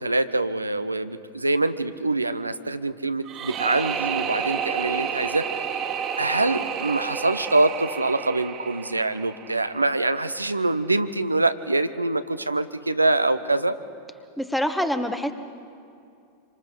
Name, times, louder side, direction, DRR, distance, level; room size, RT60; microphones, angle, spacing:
voice 1, 0.0-5.5 6.2-13.8, right 2 dB, 85° right, 11 dB, 0.7 m, -24 dB
sound 1, 3.3-10.2, right 8 dB, 30° right, 1.7 m, -30 dB
voice 2, 14.4-15.3, equal, 5° left, 9 dB, 1.3 m, -25 dB
26.0 x 25.0 x 5.1 m, 2.4 s
figure-of-eight pair, 90°, 0 cm